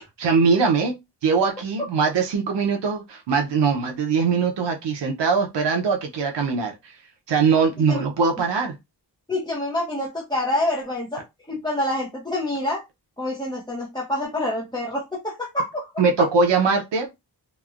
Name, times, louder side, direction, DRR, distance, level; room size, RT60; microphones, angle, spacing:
voice 1, 0.2-6.9 7.3-8.8 16.0-17.1, right 5 dB, 80° right, 0.6 m, -21 dB
voice 2, 9.3-12.8 13.2-15.9, left 1 dB, 10° left, 0.6 m, -27 dB
3.1 x 2.1 x 2.4 m
wide cardioid pair, 175°, 42 cm